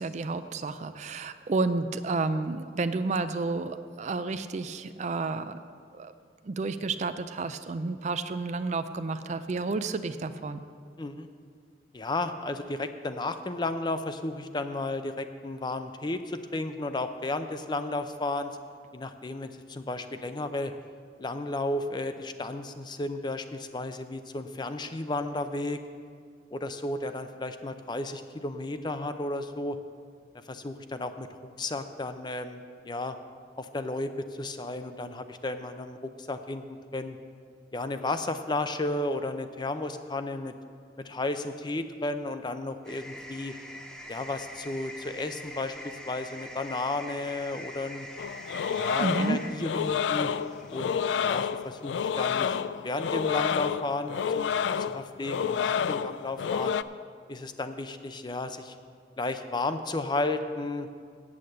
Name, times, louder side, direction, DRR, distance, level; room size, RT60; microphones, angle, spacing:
voice 1, 0.0-5.6 5.9-6.1 6.4-10.6 49.0-49.4, right 3 dB, 40° right, 11 dB, 0.4 m, -31 dB
voice 2, 11.0-11.3 11.9-18.5 18.9-20.7 21.2-25.8 26.5-29.8 30.5-33.2 33.6-37.2 37.7-40.5 41.0-43.5 44.1-45.7 46.1-48.1 48.7-50.3 50.7-56.8 57.3-58.8 59.2-60.9, left 2 dB, 25° left, 9 dB, 0.5 m, -33 dB
sound 1, 42.8-51.7, equal, 5° left, 1.2 m, -44 dB
sound 2, 48.2-56.8, left 7 dB, 85° left, 0.3 m, -29 dB
8.5 x 8.3 x 7.6 m, 2.1 s
head